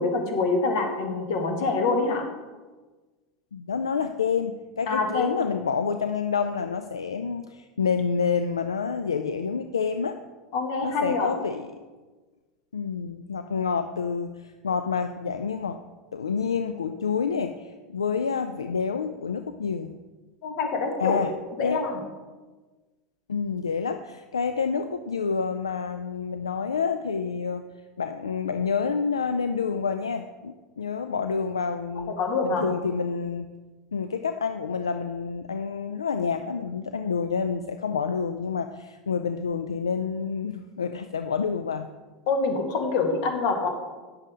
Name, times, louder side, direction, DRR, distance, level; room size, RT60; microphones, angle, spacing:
voice 1, 0.0-2.2 4.9-5.4 10.5-11.3 20.4-21.2 21.6-21.9 32.2-32.6 42.3-43.7, left 4 dB, 60° left, 3 dB, 1.8 m, -25 dB
voice 2, 3.5-10.2 10.8-11.7 12.7-15.8 16.1-19.9 21.0-21.3 21.6-21.8 23.3-27.6 28.0-32.2 32.4-33.5 33.9-41.9, left 6 dB, 90° left, 8 dB, 0.4 m, -28 dB
9.7 x 7.4 x 3.7 m, 1.3 s
hypercardioid pair, 85°, 3 cm